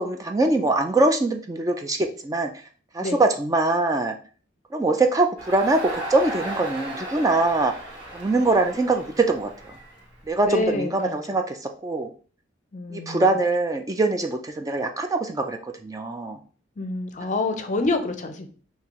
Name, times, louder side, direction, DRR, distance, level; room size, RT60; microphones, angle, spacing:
voice 1, 0.0-2.5 2.9-4.2 4.7-7.7 8.1-9.5 10.3-12.1 12.9-16.4, right 2 dB, 20° right, 5 dB, 0.3 m, -23 dB
Crowd, 5.4-10.6, right 1 dB, 60° right, 1.6 m, -36 dB
voice 2, 10.5-11.1 12.7-13.2 16.8-18.5, left 2 dB, 40° left, 8 dB, 0.5 m, -27 dB
5.2 x 2.7 x 3.0 m, 0.40 s
head